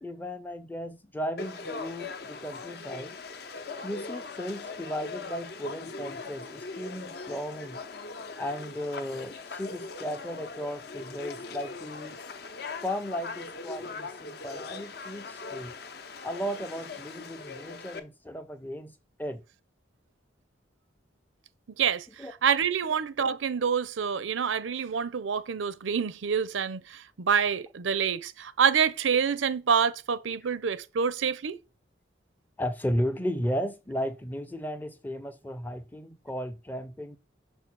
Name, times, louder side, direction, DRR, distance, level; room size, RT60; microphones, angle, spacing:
voice 1, 0.0-3.2 3.8-7.8 8.4-12.2 12.8-15.7 16.2-19.4 22.2-22.3 32.6-37.2, equal, 10° left, 0.5 m, -35 dB
Conversation / Crowd, 1.4-18.0, left 4 dB, 55° left, 0.7 m, -40 dB
voice 2, 22.4-31.6, right 7 dB, 80° right, 0.5 m, -27 dB
6.0 x 3.5 x 6.0 m
head